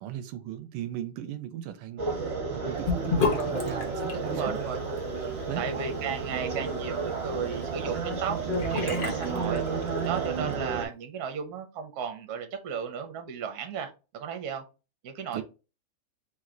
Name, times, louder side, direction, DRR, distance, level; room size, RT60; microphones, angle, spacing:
voice 1, 0.0-4.6 5.5-5.6 15.3-15.4, right 11 dB, 80° right, 1.4 m, -38 dB
sound 1, 2.0-10.8, right 4 dB, 35° right, 1.2 m, -31 dB
Sink (filling or washing) / Bathtub (filling or washing), 2.8-10.2, left 4 dB, 80° left, 0.4 m, -34 dB
voice 2, 4.2-4.8 5.6-8.4 8.7-9.6 10.0-14.6 15.0-15.4, right 7 dB, 55° right, 1.2 m, -34 dB
3.6 x 3.1 x 3.8 m
omnidirectional pair, 2.4 m